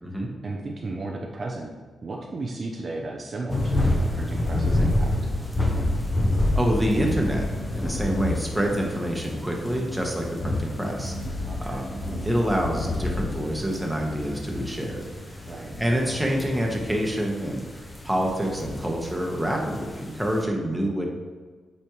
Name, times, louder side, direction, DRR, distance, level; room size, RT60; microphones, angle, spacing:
voice 1, 0.4-1.8 2.0-5.1 11.5-11.9 15.5-15.8, right 2 dB, 45° right, 0 dB, 0.6 m, -34 dB
sound 1, 3.5-20.4, left 1 dB, 20° left, 0.9 m, -29 dB
voice 2, 6.5-7.4 7.7-11.9 12.2-15.0 15.8-17.6 18.0-21.0, equal, 5° right, -1 dB, 1.2 m, -27 dB
8.4 x 4.3 x 3.1 m, 1.4 s
cardioid pair, 95°, 0 cm